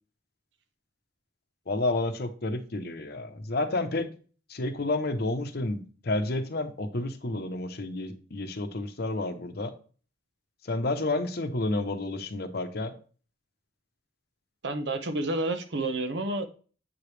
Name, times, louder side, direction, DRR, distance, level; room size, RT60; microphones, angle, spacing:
voice 1, 1.7-4.1 4.5-9.7 10.6-12.9, left 2 dB, 55° left, 0.8 m, -30 dB
voice 2, 14.6-16.4, right 2 dB, 65° right, 0.9 m, -29 dB
8.0 x 4.9 x 3.2 m
head